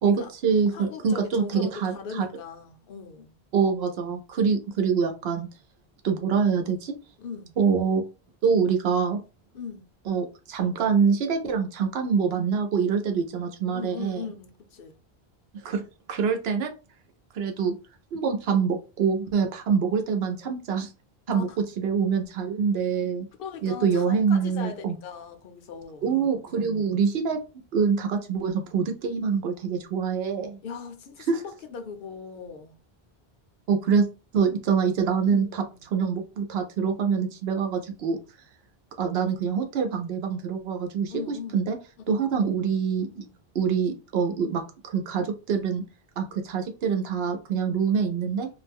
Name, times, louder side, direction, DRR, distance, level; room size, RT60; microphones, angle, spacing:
voice 1, 0.0-2.3 3.5-5.5 6.0-6.9 7.6-8.0 8.4-9.2 10.1-14.2 15.6-15.8 16.1-16.7 17.3-17.7 18.1-20.9 21.3-21.5 21.8-23.3 23.6-25.0 26.0-27.4 27.7-30.6 31.3-31.4 33.7-34.1 34.3-35.6 35.9-38.2 39.0-41.8 42.1-43.3 43.5-45.8 46.2-48.5, right 6 dB, 75° right, 0.8 m, -25 dB
voice 2, 0.7-3.3 7.2-7.5 9.5-9.9 13.7-15.0 21.3-21.6 23.4-26.1 30.6-32.8 35.2-35.8 41.1-41.6 42.1-42.4, left 6 dB, 65° left, 0.7 m, -39 dB
2.4 x 2.1 x 3.4 m
omnidirectional pair, 1.0 m